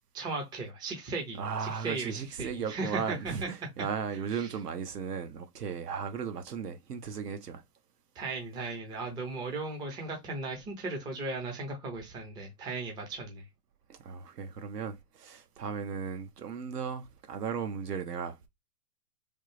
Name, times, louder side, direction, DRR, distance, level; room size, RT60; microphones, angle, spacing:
voice 1, 0.1-3.5 4.3-4.5 8.2-13.4, right 3 dB, 10° right, 0.5 m, -37 dB
voice 2, 1.4-7.6 13.9-18.5, right 6 dB, 75° right, 0.9 m, -36 dB
3.4 x 2.0 x 3.1 m
hypercardioid pair, 115°, 48 cm